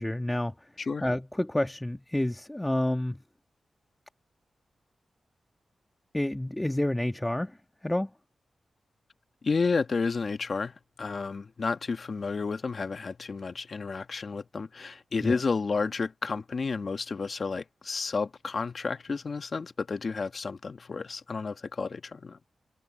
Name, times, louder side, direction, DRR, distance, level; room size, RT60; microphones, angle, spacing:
voice 1, 0.0-0.7 1.0-3.2 6.1-7.6 7.8-8.1 15.2-15.4, left 1 dB, 15° left, 1.8 m, -29 dB
voice 2, 9.4-22.5, left 4 dB, 60° left, 1.5 m, -31 dB
cardioid pair, 45°, 0 cm